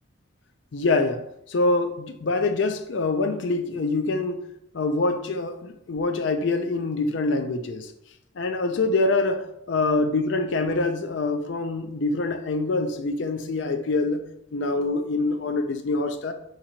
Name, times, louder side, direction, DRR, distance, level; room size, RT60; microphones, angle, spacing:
voice 1, 0.7-4.4 4.7-7.9 8.4-14.2 14.5-16.3, left 3 dB, 60° left, 0.4 m, -25 dB
3.7 x 2.9 x 4.4 m
head